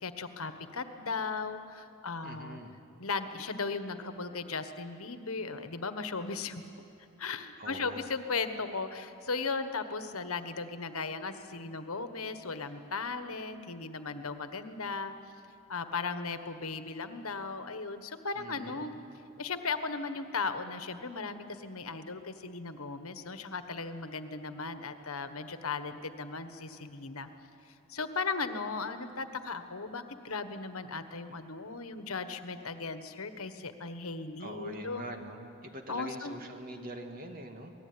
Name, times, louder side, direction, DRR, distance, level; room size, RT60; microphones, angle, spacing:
voice 1, 0.0-2.6 3.0-6.6 7.2-15.1 15.7-18.9 19.4-27.3 27.9-35.0 35.9-36.3, left 4 dB, 75° left, 9 dB, 1.4 m, -37 dB
voice 2, 2.2-2.7 7.6-8.0 18.4-18.9 34.4-37.7, right 1 dB, 40° right, 4 dB, 2.3 m, -43 dB
27.5 x 19.0 x 9.7 m, 2.7 s
head